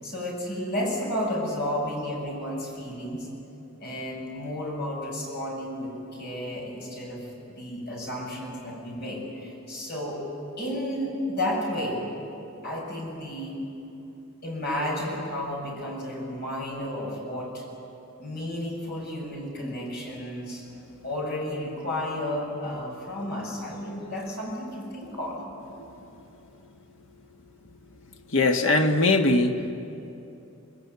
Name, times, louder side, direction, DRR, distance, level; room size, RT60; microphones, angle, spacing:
voice 1, 0.0-3.3 3.8-5.9 6.2-10.2 10.6-12.0 12.6-13.6 14.4-17.6 18.2-20.6 21.0-25.5, left 1 dB, 50° left, -1 dB, 7.7 m, -32 dB
voice 2, 28.3-29.7, left 2 dB, 65° left, 4 dB, 1.5 m, -21 dB
26.5 x 20.5 x 9.6 m, 2.8 s
head